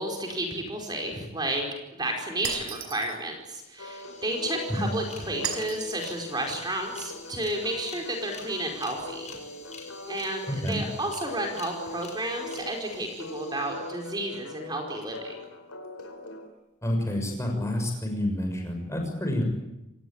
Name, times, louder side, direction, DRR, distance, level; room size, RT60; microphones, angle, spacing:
voice 1, 0.0-1.6 1.9-9.4 10.1-15.4, right 1 dB, 20° right, 2 dB, 4.9 m, -32 dB
Shatter, 2.4-3.2 5.4-6.2, right 8 dB, 75° right, 5.2 m, -35 dB
sound 1, 3.4-3.5 3.7-14.5, left 5 dB, 35° left, 6.0 m, -48 dB
sound 2, 3.8-16.5, left 1 dB, 85° left, 4.4 m, -42 dB
voice 2, 16.8-19.4, left 1 dB, 15° left, 2 dB, 6.8 m, -28 dB
28.0 x 19.0 x 8.9 m, 0.91 s
head